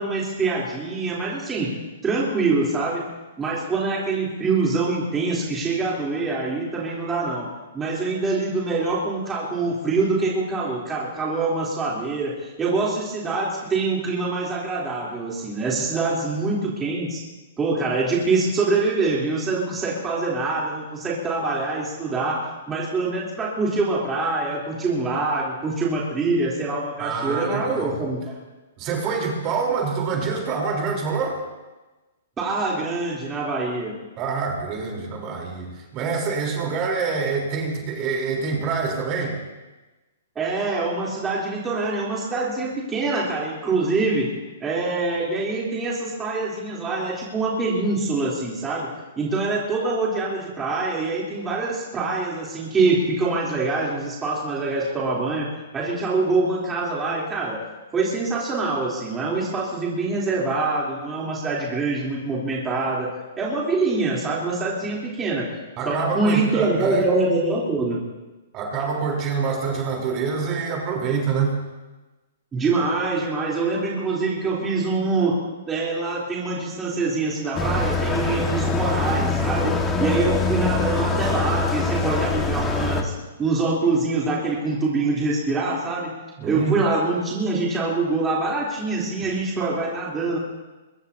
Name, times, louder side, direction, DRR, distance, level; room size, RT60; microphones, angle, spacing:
voice 1, 0.0-1.8 2.0-3.0 3.4-7.5 7.7-17.2 17.6-22.4 22.7-28.2 32.4-34.0 40.4-44.3 44.6-55.5 55.7-57.6 57.9-63.1 63.4-65.5 65.9-68.0 72.5-75.4 75.7-83.1 83.4-86.1 86.4-90.4, right 3 dB, 15° right, -5 dB, 3.5 m, -24 dB
voice 2, 27.0-28.0 28.8-31.4 34.2-39.4 65.8-67.0 68.5-71.6 86.4-86.8, right 5 dB, 30° right, 0 dB, 3.9 m, -26 dB
sound 1, 77.5-83.0, left 3 dB, 15° left, 1.7 m, -23 dB
23.5 x 21.5 x 2.8 m, 1.1 s
hypercardioid pair, 145°, 0 cm